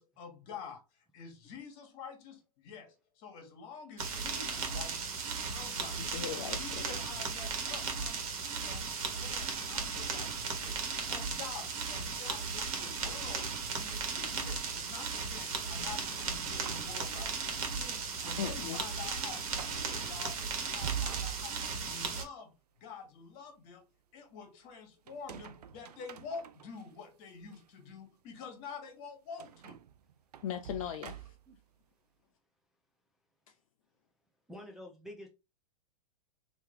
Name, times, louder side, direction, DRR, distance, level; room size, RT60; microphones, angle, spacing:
voice 1, 0.0-5.2 5.5-6.2 6.6-10.8 11.1-22.5 22.8-23.8 24.1-29.8, left 5 dB, 40° left, 1.5 m, -48 dB
sound 1, 4.0-22.2, right 5 dB, 60° right, 1.4 m, -36 dB
voice 2, 6.0-6.9 18.4-18.8 30.4-31.3, left 9 dB, 60° left, 0.5 m, -38 dB
sound 2, 15.7-17.7 18.1-18.7 19.0-19.1 19.5-19.9 20.6-21.9 25.1-26.8 27.5-27.6 29.4-31.6, right 10 dB, 85° right, 0.5 m, -46 dB
voice 3, 34.5-35.3, left 1 dB, ahead, 0.6 m, -47 dB
3.2 x 3.0 x 3.7 m
hypercardioid pair, 135°, 20 cm